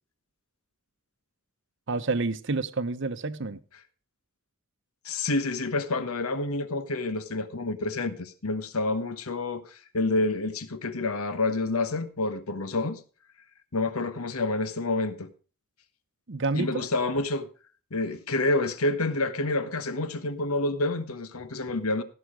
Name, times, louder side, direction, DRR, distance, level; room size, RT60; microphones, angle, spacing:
voice 1, 1.9-3.6 16.3-16.9, right 3 dB, 55° right, 0.8 m, -29 dB
voice 2, 5.0-13.0 13.7-15.3 16.5-17.5 17.9-22.0, left 2 dB, 90° left, 1.2 m, -28 dB
16.0 x 7.1 x 5.0 m
head